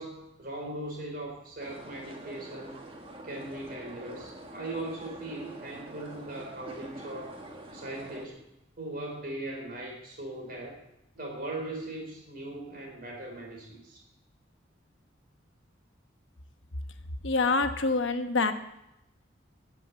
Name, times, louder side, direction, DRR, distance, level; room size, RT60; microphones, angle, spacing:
voice 1, 0.0-2.8 3.2-7.3 7.7-8.5 8.8-10.8 11.1-14.0, right 1 dB, 45° right, 0 dB, 4.3 m, -39 dB
sound 1, 1.6-8.3, right 1 dB, 30° right, 1.6 m, -45 dB
voice 2, 17.2-18.5, left 3 dB, 75° left, 8 dB, 1.1 m, -26 dB
13.0 x 7.6 x 8.7 m, 0.87 s
head